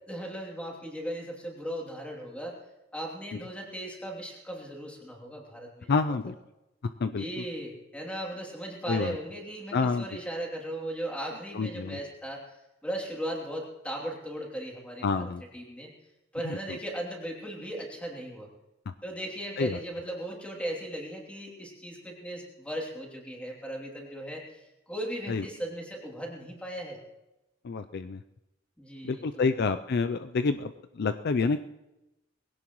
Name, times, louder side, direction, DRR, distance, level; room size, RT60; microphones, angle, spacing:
voice 1, 0.1-2.5 2.9-6.1 7.1-12.6 12.8-15.9 16.3-18.5 19.0-27.0 28.8-29.5, right 1 dB, 5° left, -1 dB, 2.9 m, -37 dB
voice 2, 5.9-6.4 7.0-7.4 8.9-9.2 9.7-10.1 11.5-12.0 15.0-15.4 16.4-16.6 19.6-19.8 25.3-25.4 27.6-28.2 29.0-31.6, left 4 dB, 50° left, 10 dB, 0.4 m, -28 dB
21.0 x 17.0 x 3.1 m, 0.97 s
head